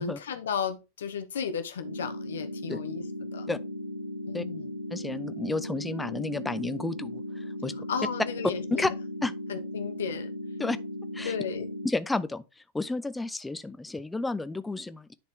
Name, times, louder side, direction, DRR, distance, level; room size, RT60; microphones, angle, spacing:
voice 1, 0.0-3.5 4.3-4.7 7.9-9.0 9.5-10.3 11.2-11.7, left 6 dB, 65° left, 1.2 m, -34 dB
sound 1, 1.8-11.9, left 1 dB, 80° right, 0.9 m, -37 dB
voice 2, 4.9-7.2 7.6-7.7 8.7-8.9 9.2-9.3 10.6-10.8 11.1-11.4 11.8-12.4 12.7-15.1, left 2 dB, 10° left, 0.6 m, -31 dB
10.5 x 4.3 x 3.5 m
figure-of-eight pair, 90°, 0 cm